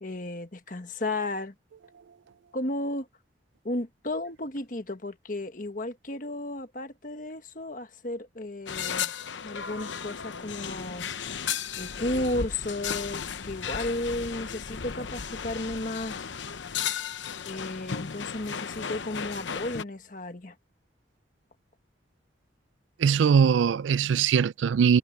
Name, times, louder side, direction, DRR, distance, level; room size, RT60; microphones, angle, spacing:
voice 1, 0.0-1.5 2.5-3.1 3.6-9.1 9.4-11.1 11.8-16.3 17.4-20.5, left 1 dB, 45° left, 1.5 m, -33 dB
sound 1, 8.7-19.8, left 7 dB, 80° left, 0.8 m, -35 dB
voice 2, 23.0-25.0, right 7 dB, 85° right, 0.4 m, -21 dB
head